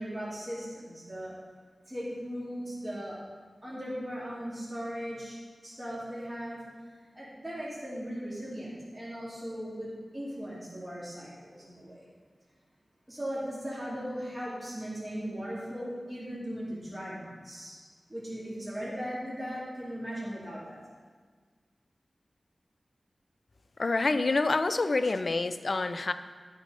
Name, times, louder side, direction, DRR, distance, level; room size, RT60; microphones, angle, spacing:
voice 1, 0.0-1.3 1.9-3.2 3.6-5.4 5.6-6.6 7.0-12.1 13.1-17.8 18.1-20.8, equal, 25° right, -8 dB, 2.2 m, -38 dB
voice 2, 23.8-26.1, left 3 dB, 60° left, 11 dB, 0.4 m, -27 dB
10.5 x 4.1 x 5.2 m, 1.5 s
wide cardioid pair, 75°, 0 cm